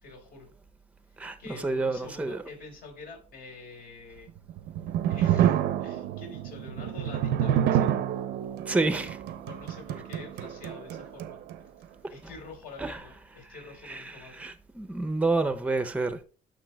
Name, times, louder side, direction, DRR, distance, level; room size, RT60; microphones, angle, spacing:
voice 1, 0.0-0.5 1.4-4.3 5.1-7.9 9.4-11.4 12.1-14.4, left 3 dB, 65° left, 4.0 m, -47 dB
voice 2, 1.2-2.4 8.7-9.2 12.8-13.0 13.8-16.2, right 3 dB, 10° right, 0.6 m, -29 dB
sound 1, 4.4-11.6, right 10 dB, 80° right, 0.6 m, -28 dB
10.0 x 6.5 x 2.3 m
cardioid pair, 110°, 17 cm